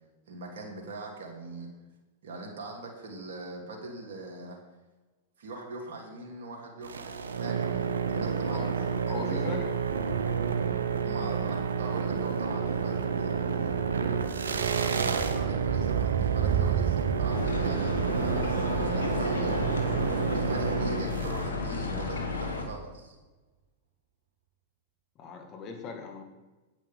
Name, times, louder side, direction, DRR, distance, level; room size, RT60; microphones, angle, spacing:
voice 1, 0.3-1.7 2.2-4.6 5.4-9.6 11.0-13.7 14.4-19.7 20.3-23.2, right 2 dB, 70° right, -1 dB, 2.5 m, -41 dB
sound 1, 6.8-21.4, right 6 dB, 90° right, 0.9 m, -30 dB
voice 2, 8.5-9.7 19.3-19.4 25.2-26.2, left 5 dB, 40° left, 4 dB, 2.0 m, -40 dB
sound 2, 12.4-20.7 21.0-21.1, right 9 dB, 50° right, 0.7 m, -34 dB
sound 3, 17.3-22.7, left 3 dB, 90° left, 1.7 m, -33 dB
8.9 x 8.8 x 5.3 m, 1.2 s
hypercardioid pair, 105°, 0 cm